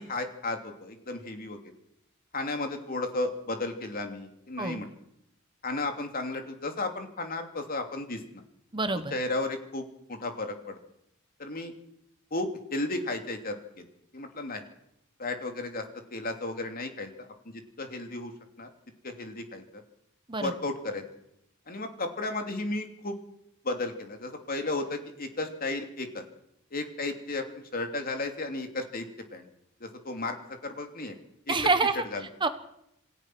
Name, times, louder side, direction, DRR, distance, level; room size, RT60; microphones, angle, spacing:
voice 1, 0.0-1.6 2.3-4.9 5.6-8.2 9.1-10.8 11.4-11.7 12.3-13.9 14.1-14.6 15.2-15.8 16.1-17.1 17.4-18.3 18.6-18.7 19.0-19.8 20.4-21.0 21.7-23.1 23.6-26.2 26.7-29.1 29.3-29.5 29.8-31.2 31.5-31.6 32.1-32.2, left 2 dB, 45° left, 5 dB, 2.8 m, -34 dB
voice 2, 8.7-9.1 20.3-20.5 31.5-32.0 32.4-32.5, right 3 dB, 25° right, 9 dB, 1.3 m, -26 dB
27.5 x 16.5 x 6.2 m, 0.77 s
head